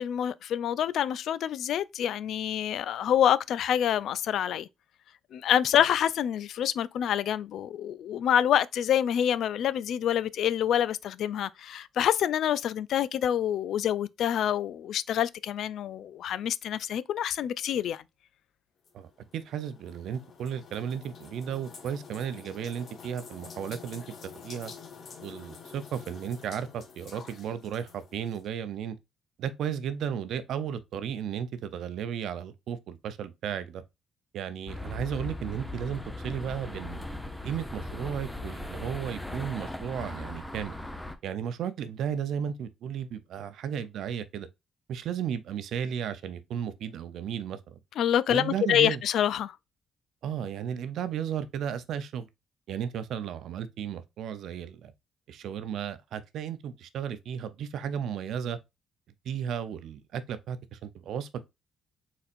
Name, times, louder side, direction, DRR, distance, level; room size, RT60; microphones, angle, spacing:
voice 1, 0.0-4.7 5.3-18.0 48.0-49.6, left 10 dB, 75° left, 0.3 m, -27 dB
sound 1, 18.8-28.5, left 5 dB, 60° left, 1.0 m, -48 dB
voice 2, 18.9-24.7 25.2-29.0 29.4-33.8 34.3-37.0 37.4-40.8 41.2-44.5 44.9-47.8 48.3-49.0 50.2-52.3 52.7-54.9 55.3-58.6 59.2-61.4, right 8 dB, 75° right, 0.6 m, -34 dB
sound 2, 34.7-41.2, left 1 dB, 5° left, 0.7 m, -38 dB
4.2 x 4.1 x 2.5 m
cardioid pair, 90°, 0 cm